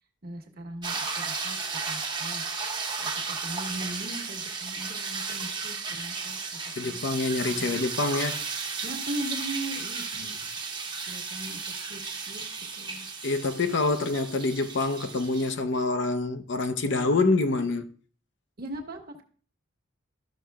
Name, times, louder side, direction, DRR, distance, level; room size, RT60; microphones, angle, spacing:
voice 1, 0.2-1.6 1.8-2.5 3.0-7.0 7.5-7.8 8.8-10.5 11.1-12.0 12.3-12.4 12.7-13.1 18.6-19.2, right 1 dB, 50° right, 1.2 m, -39 dB
sound 1, 0.8-15.5, right 4 dB, 20° right, 0.8 m, -34 dB
voice 2, 6.8-8.5 10.2-10.3 13.2-17.9, left 3 dB, 60° left, 0.6 m, -26 dB
12.5 x 6.2 x 2.3 m
head